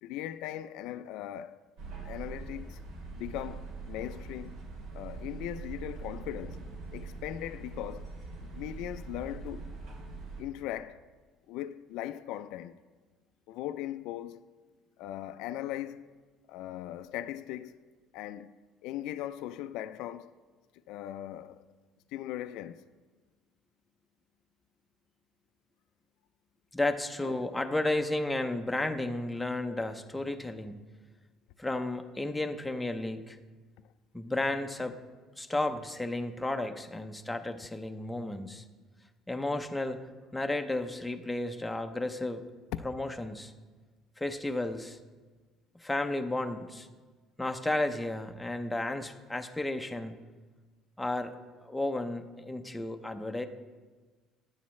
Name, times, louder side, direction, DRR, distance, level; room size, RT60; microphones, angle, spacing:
voice 1, 0.0-1.6 2.0-2.8 3.2-4.5 4.9-6.6 6.9-8.1 8.5-9.7 10.4-11.0 11.5-12.8 13.5-14.4 15.0-16.1 16.5-17.8 18.1-18.5 18.8-20.3 20.9-21.6 22.1-22.8 27.2-27.5, left 12 dB, 75° left, 0.4 m, -39 dB
sound 1, 1.8-10.4, right 4 dB, 75° right, 2.7 m, -42 dB
voice 2, 26.7-30.8 31.6-33.4 34.1-35.0 35.4-38.6 39.3-40.0 40.3-42.4 42.8-43.5 44.2-45.0 45.8-46.9 47.4-50.1 51.0-51.4 51.6-53.5, left 2 dB, 5° left, 0.6 m, -33 dB
15.5 x 10.0 x 3.2 m
cardioid pair, 160°, 0 cm